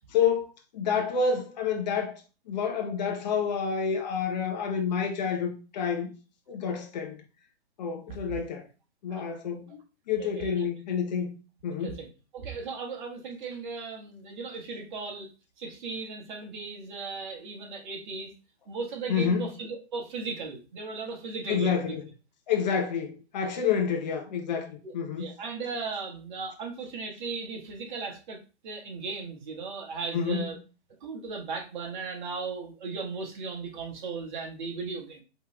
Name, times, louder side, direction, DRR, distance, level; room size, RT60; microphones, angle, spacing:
voice 1, 0.1-2.1 2.5-6.1 6.5-7.2 7.8-8.7 9.0-9.8 10.1-11.4 11.6-12.0 19.1-19.5 21.5-22.1 22.5-25.3 30.1-30.5, left 6 dB, 40° left, 0.9 m, -28 dB
voice 2, 10.2-10.7 11.8-12.1 12.3-15.3 15.6-18.3 18.7-22.0 24.8-28.4 28.6-30.6 31.0-35.2, right 4 dB, 45° right, 1.5 m, -37 dB
5.0 x 3.3 x 3.2 m
figure-of-eight pair, 130°, 33 cm